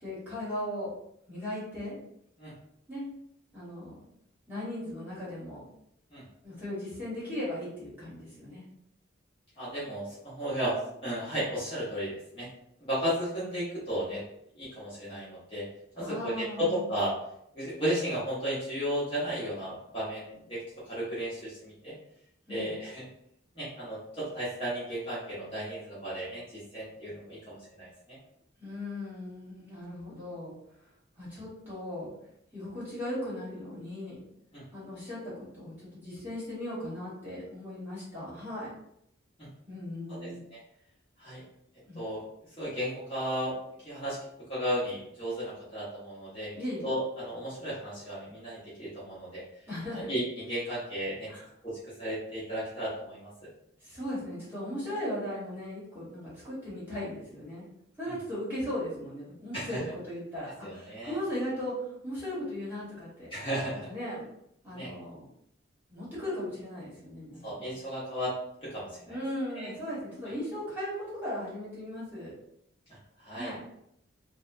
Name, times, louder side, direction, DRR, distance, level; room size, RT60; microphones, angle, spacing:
voice 1, 0.0-0.9 1.3-2.0 2.9-3.0 3.5-4.1 4.5-5.6 6.4-8.6 16.0-16.9 22.5-22.8 28.6-30.6 31.2-32.1 32.5-34.2 34.7-38.7 39.7-40.4 41.8-42.0 46.5-46.9 49.7-50.1 51.3-51.5 53.8-57.6 58.0-63.3 63.8-64.2 64.6-65.3 65.9-67.8 69.1-72.3 73.3-73.6, left 1 dB, 10° right, -10 dB, 1.2 m, -37 dB
voice 2, 9.6-10.8 11.0-12.5 12.9-14.2 14.6-15.6 15.9-17.1 17.5-20.6 20.9-21.9 22.5-23.0 23.5-27.9 34.5-34.6 40.2-40.3 41.2-41.4 41.9-42.2 42.6-43.5 43.8-44.2 44.5-46.5 46.8-49.4 50.1-51.3 51.6-53.3 59.5-59.8 60.6-61.2 63.3-63.9 64.7-64.9 67.4-68.3 68.6-69.1 69.5-69.7 73.2-73.5, equal, 25° left, -10 dB, 0.9 m, -34 dB
2.7 x 2.1 x 2.5 m, 0.74 s
head